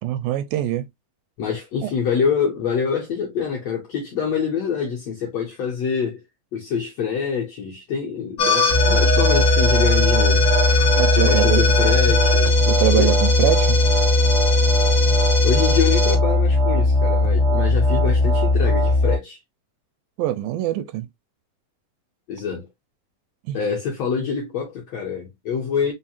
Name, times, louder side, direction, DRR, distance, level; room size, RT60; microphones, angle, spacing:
voice 1, 0.0-0.9 1.8-1.9 10.9-11.7 12.7-13.8 20.2-21.1 23.4-23.6, right 13 dB, 80° right, 2.2 m, -23 dB
voice 2, 1.4-6.2 6.5-10.5 11.1-12.6 12.9-13.1 15.4-19.4 22.3-22.7 23.5-25.9, left 6 dB, 70° left, 1.6 m, -25 dB
sound 1, 8.4-19.2, left 2 dB, 45° left, 0.8 m, -17 dB
5.5 x 2.1 x 2.8 m
omnidirectional pair, 4.2 m